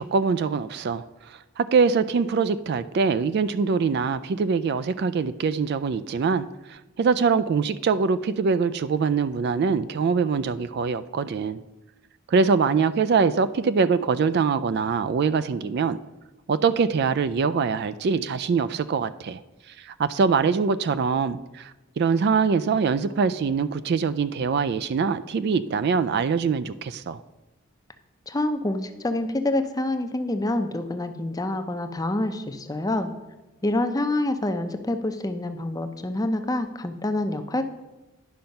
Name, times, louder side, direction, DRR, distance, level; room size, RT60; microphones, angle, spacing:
voice 1, 0.0-11.6 12.3-16.0 16.5-19.4 19.8-27.2, right 5 dB, 50° right, 13 dB, 0.3 m, -23 dB
voice 2, 28.3-33.1 33.6-37.6, left 1 dB, 15° left, 8 dB, 0.5 m, -27 dB
10.5 x 5.7 x 5.3 m, 1.1 s
head